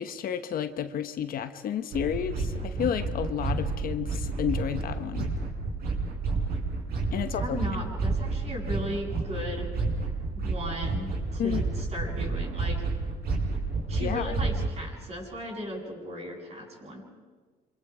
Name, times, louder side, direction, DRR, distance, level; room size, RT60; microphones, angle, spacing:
voice 1, 0.0-5.3 7.1-7.6 11.4-11.6 14.0-14.3, left 9 dB, 60° left, 9 dB, 1.2 m, -31 dB
sound 1, 1.9-14.7, right 3 dB, 65° right, 6.4 m, -30 dB
voice 2, 7.3-9.7 10.3-12.8 13.9-17.0, equal, 40° right, -1 dB, 7.9 m, -36 dB
28.0 x 26.0 x 5.0 m, 1.5 s
cardioid pair, 110°, 17 cm